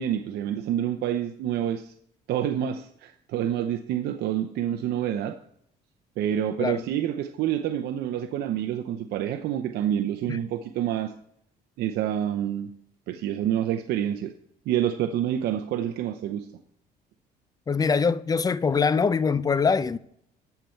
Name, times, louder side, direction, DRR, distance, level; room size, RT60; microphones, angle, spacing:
voice 1, 0.0-1.9 2.3-5.4 6.2-11.1 11.8-12.7 13.1-14.3 14.7-16.5, right 10 dB, 75° right, 0.7 m, -27 dB
voice 2, 17.7-20.0, left 5 dB, 20° left, 0.5 m, -23 dB
13.5 x 6.6 x 4.5 m
cardioid pair, 110°, 17 cm